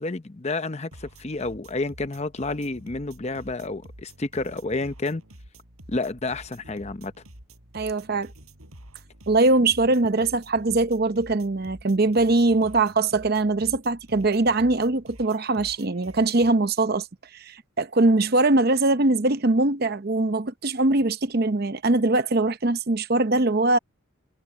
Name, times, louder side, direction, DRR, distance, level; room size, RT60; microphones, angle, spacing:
voice 1, 0.0-5.2 5.9-7.1, left 2 dB, 30° left, 0.7 m, -30 dB
sound 1, 0.9-16.5, right 1 dB, 90° right, 7.9 m, -48 dB
voice 2, 7.7-8.3 9.3-17.1 17.3-23.8, right 2 dB, 45° right, 0.7 m, -22 dB
head